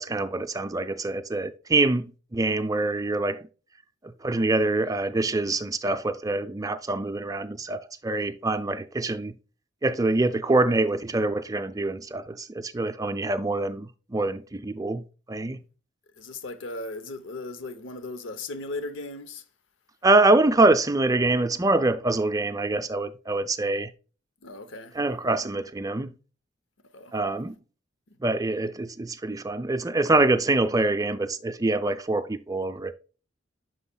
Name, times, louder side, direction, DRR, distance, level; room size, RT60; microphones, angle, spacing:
voice 1, 0.0-3.4 4.2-9.3 9.8-15.6 20.0-23.9 24.9-26.1 27.1-27.5 28.2-32.9, right 2 dB, 20° right, 0.5 m, -25 dB
voice 2, 16.2-19.4 24.4-24.9 26.9-27.1 28.1-28.2, left 2 dB, 75° left, 0.8 m, -37 dB
9.7 x 6.3 x 2.3 m
head